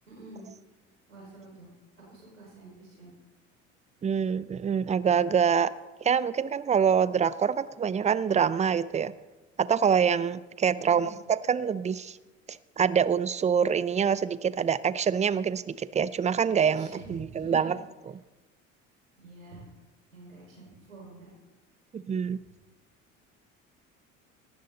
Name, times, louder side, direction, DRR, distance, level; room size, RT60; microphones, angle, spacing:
voice 1, 0.1-0.5 1.1-1.7 2.0-3.1 10.8-11.2 16.7-17.7 19.2-19.7 20.1-21.3, right 2 dB, 85° right, -2 dB, 5.2 m, -47 dB
voice 2, 4.0-5.7 6.0-9.1 9.6-12.2 12.8-17.8 21.9-22.4, right 7 dB, 20° right, 18 dB, 0.6 m, -25 dB
17.5 x 13.0 x 4.0 m, 1.1 s
figure-of-eight pair, 65°, 39 cm